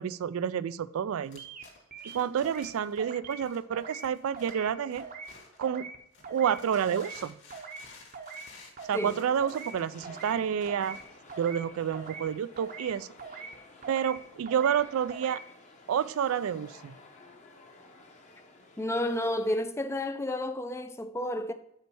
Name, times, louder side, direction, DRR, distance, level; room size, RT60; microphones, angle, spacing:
voice 1, 0.0-1.4 2.0-5.1 5.6-5.9 6.3-7.4 8.9-11.0 11.4-13.1 13.9-15.4 15.9-17.0, right 8 dB, 70° right, 0.3 m, -29 dB
sound 1, 1.2-5.8 6.1-11.2, left 3 dB, 55° left, 1.9 m, -54 dB
sound 2, 1.4-1.6 1.9-2.7 3.0-3.4 3.7-4.1 4.3-4.7 5.0-5.3 5.6-6.0 6.2-6.6 6.9-7.2 7.5-7.9 8.1-8.5 8.8-9.1 9.4-9.8 10.0-10.4 10.7-11.0 11.3-11.7 11.9-12.3 12.6-12.9 13.2-13.6 13.8-14.2 14.5-14.8 15.1-15.4, right 4 dB, 40° right, 0.7 m, -43 dB
sound 3, 9.1-19.6, left 2 dB, 30° left, 0.9 m, -54 dB
voice 2, 18.8-21.5, left 1 dB, 10° left, 0.4 m, -31 dB
5.6 x 4.4 x 6.1 m
head